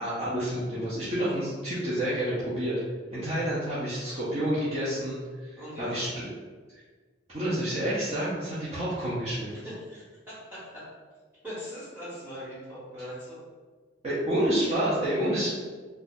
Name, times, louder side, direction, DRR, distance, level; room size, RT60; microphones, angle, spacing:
voice 1, 0.0-2.7 3.1-5.5 5.8-6.2 7.3-9.5 14.0-15.5, right 1 dB, 30° right, -11 dB, 0.7 m, -29 dB
voice 2, 5.6-6.1 9.5-10.8 11.4-13.4, equal, 10° right, -10 dB, 1.5 m, -41 dB
2.7 x 2.3 x 4.1 m, 1.4 s
head